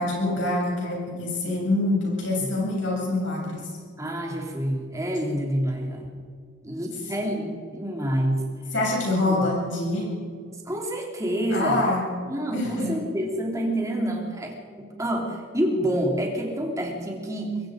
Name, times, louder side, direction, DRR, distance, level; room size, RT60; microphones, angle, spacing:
voice 1, 0.0-3.6 8.7-10.1 11.5-12.0 12.5-13.0, left 2 dB, 60° left, -3 dB, 7.7 m, -25 dB
voice 2, 4.0-6.1 6.6-8.4 9.3-9.5 10.7-11.8 12.3-17.6, right 1 dB, 15° right, 0 dB, 3.1 m, -28 dB
23.0 x 23.0 x 5.1 m, 2.1 s
head